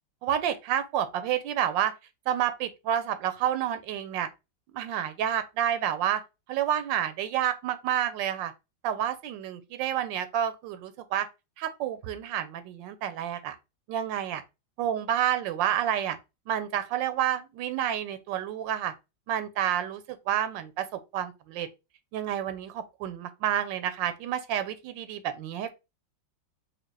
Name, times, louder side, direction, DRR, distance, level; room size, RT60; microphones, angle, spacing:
voice 1, 0.2-1.9 2.3-4.3 4.7-6.2 6.5-8.5 8.8-11.3 11.6-13.6 13.9-14.4 14.8-16.2 16.5-18.9 19.3-21.7 22.1-25.7, right 10 dB, 90° right, 1.3 m, -29 dB
4.4 x 2.2 x 3.2 m
omnidirectional pair, 1.9 m